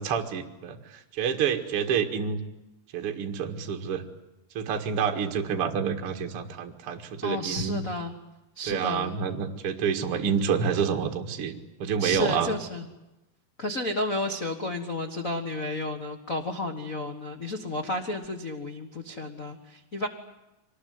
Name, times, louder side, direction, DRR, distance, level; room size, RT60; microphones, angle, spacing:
voice 1, 0.0-2.4 2.9-4.0 4.5-7.8 8.7-12.5, right 7 dB, 45° right, 4 dB, 2.3 m, -28 dB
voice 2, 7.2-8.1 8.5-9.2 12.0-12.9 13.6-20.1, left 1 dB, 55° left, 6 dB, 0.8 m, -32 dB
25.0 x 20.0 x 9.6 m, 0.97 s
omnidirectional pair, 4.4 m